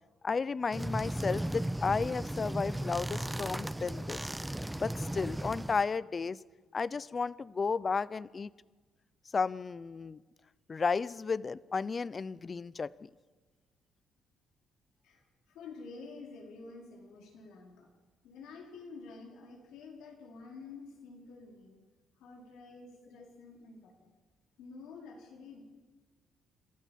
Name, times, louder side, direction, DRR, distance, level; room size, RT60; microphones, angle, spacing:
voice 1, 0.2-4.3 4.8-6.4 6.7-8.5 9.3-10.2 10.7-13.1, left 5 dB, 35° left, 20 dB, 0.6 m, -33 dB
sound 1, 0.7-5.9, right 1 dB, 10° right, 0.7 m, -36 dB
voice 2, 15.0-17.9 18.2-21.8 22.2-24.1 24.6-25.6, left 4 dB, 90° left, 0 dB, 4.7 m, -49 dB
26.5 x 13.5 x 7.4 m, 1.3 s
cardioid pair, 90°, 0 cm